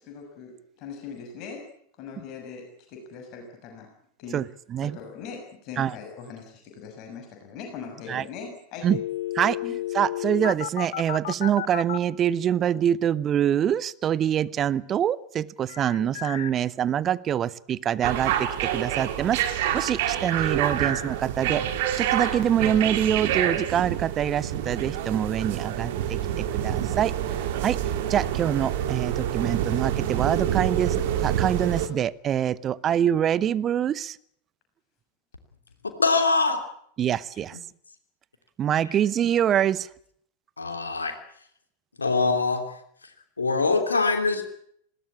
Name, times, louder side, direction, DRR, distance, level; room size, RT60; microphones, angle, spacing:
voice 1, 0.0-1.7 2.0-2.6 2.9-3.9 4.2-4.4 4.8-8.9 9.6-9.8 37.3-37.4, left 5 dB, 40° left, 3 dB, 6.5 m, -40 dB
sound 1, 8.9-12.0 15.7-16.5, left 13 dB, 60° left, 0.9 m, -32 dB
voice 2, 9.9-21.6 22.0-26.2 26.5-27.1 27.6-27.8 28.1-34.2 37.0-37.6 38.6-39.9, right 9 dB, 25° right, 20 dB, 0.8 m, -25 dB
sound 2, 18.0-31.9, right 10 dB, 50° right, 2.5 m, -27 dB
voice 3, 36.0-36.6 40.6-41.1 42.0-42.6 43.4-44.4, left 3 dB, 75° left, 6 dB, 3.0 m, -23 dB
20.0 x 18.0 x 8.7 m, 0.67 s
figure-of-eight pair, 90°, 0 cm